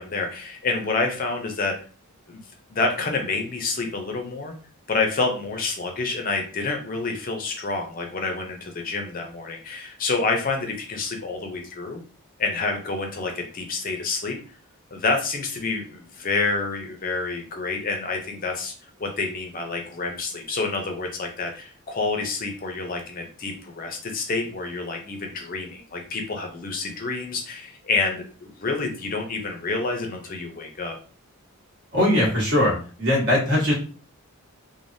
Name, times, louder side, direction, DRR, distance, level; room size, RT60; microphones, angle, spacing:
voice 1, 0.0-1.8 2.3-2.4 2.7-4.5 4.9-12.0 12.4-14.4 14.9-18.7 19.0-31.0, left 3 dB, 40° left, 3 dB, 0.5 m, -28 dB
voice 2, 31.9-32.7 33.0-33.7, left 1 dB, 50° right, -4 dB, 1.2 m, -20 dB
3.3 x 2.0 x 2.6 m, 0.39 s
head